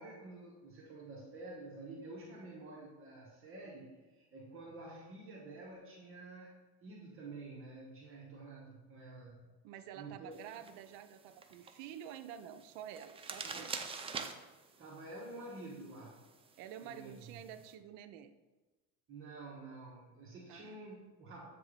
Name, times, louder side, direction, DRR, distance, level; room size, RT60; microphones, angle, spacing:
voice 1, 0.0-9.5 9.9-10.4 13.4-13.7 14.8-16.2 16.8-17.4 19.1-21.5, right 2 dB, 35° right, -4 dB, 1.3 m, -49 dB
voice 2, 9.6-13.8 16.6-18.3 20.5-20.8, right 9 dB, 70° right, 10 dB, 0.6 m, -49 dB
sound 1, 10.3-17.7, right 5 dB, 15° right, 0.4 m, -48 dB
7.9 x 3.5 x 5.0 m, 1.2 s
supercardioid pair, 125°, 35 cm